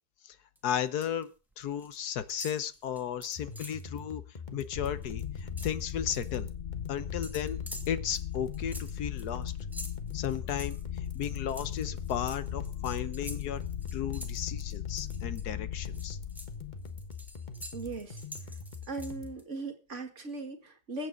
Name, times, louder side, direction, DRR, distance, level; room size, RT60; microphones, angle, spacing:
voice 1, 0.6-1.3 1.6-4.2 4.5-6.5 6.9-7.6 7.9-9.5 10.1-10.8 11.1-13.6 13.9-16.2, left 9 dB, 85° left, 13 dB, 1.5 m, -34 dB
sound 1, 0.6-1.2 1.5-2.0 2.3-3.9 4.3-4.5 4.8-6.4 7.2-15.4 15.8-19.4, equal, ahead, 2.5 m, -48 dB
sound 2, 3.4-19.4, left 4 dB, 30° left, 1.4 m, -44 dB
sound 3, 4.8-18.1, left 10 dB, 45° left, 1.1 m, -38 dB
voice 2, 17.7-18.2 18.9-21.1, right 3 dB, 50° right, 6 dB, 2.2 m, -38 dB
22.5 x 8.5 x 3.9 m, 0.32 s
omnidirectional pair, 1.6 m